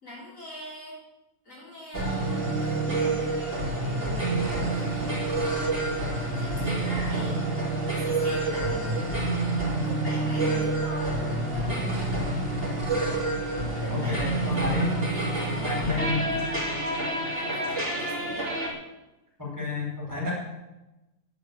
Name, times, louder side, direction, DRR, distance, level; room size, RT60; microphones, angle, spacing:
voice 1, 0.0-1.0 1.5-2.8 3.1-5.4 6.4-7.4 7.9-9.1 9.8-12.0 13.8-16.7 17.3-18.5, equal, 60° left, -5 dB, 4.4 m, -41 dB
sound 1, 1.9-18.7, right 2 dB, 40° right, 3.7 m, -28 dB
voice 2, 13.9-14.9 15.6-16.2 19.4-20.3, left 3 dB, 10° right, -6 dB, 5.4 m, -30 dB
11.0 x 8.0 x 8.8 m, 1.0 s
omnidirectional pair, 1.6 m